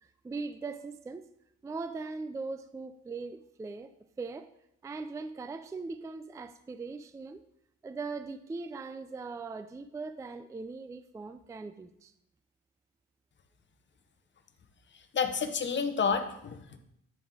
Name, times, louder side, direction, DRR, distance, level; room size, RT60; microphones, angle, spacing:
voice 1, 0.0-1.3 1.6-3.9 4.2-4.5 4.8-7.4 7.8-12.1, right 4 dB, 10° right, 11 dB, 0.3 m, -40 dB
voice 2, 15.1-16.8, left 6 dB, 40° left, 8 dB, 0.8 m, -30 dB
8.9 x 3.5 x 4.8 m, 0.77 s
cardioid pair, 90°, 30 cm